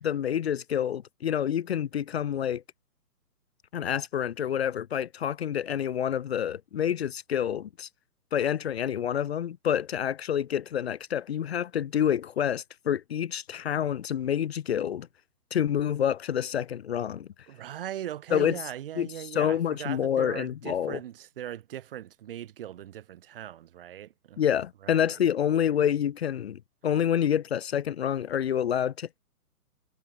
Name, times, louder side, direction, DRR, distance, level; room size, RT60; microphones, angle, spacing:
voice 1, 0.0-2.6 3.7-7.9 8.3-15.1 15.5-17.3 18.3-18.5 19.0-21.0 24.4-29.2, left 9 dB, 40° left, 1.7 m, -28 dB
voice 2, 17.5-24.4 24.8-25.2, right 11 dB, 35° right, 3.2 m, -39 dB
hypercardioid pair, 160°, 47 cm